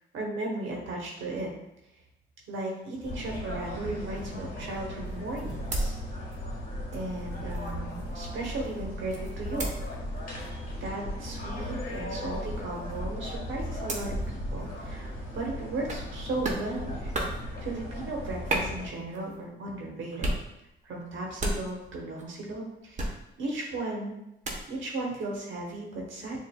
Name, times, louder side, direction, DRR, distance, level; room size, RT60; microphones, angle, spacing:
voice 1, 0.1-1.5 2.5-6.0 6.9-9.7 10.8-17.1 17.6-20.3 20.8-23.1 23.4-24.2 24.7-26.4, right 2 dB, 75° right, -2 dB, 1.1 m, -36 dB
sound 1, 3.0-18.9, equal, 45° left, 1.4 m, -37 dB
sound 2, 5.1-6.6 6.9-9.9 10.4-10.7 11.1-11.3 11.6-15.2 15.8-16.2 16.4-16.7 17.0-17.4 18.5-19.4 20.1-20.5 20.8-22.3 23.0-23.4 24.4-24.7, right 1 dB, 35° right, 1.0 m, -35 dB
6.9 x 2.6 x 2.2 m, 0.86 s
cardioid pair, 90°, 20 cm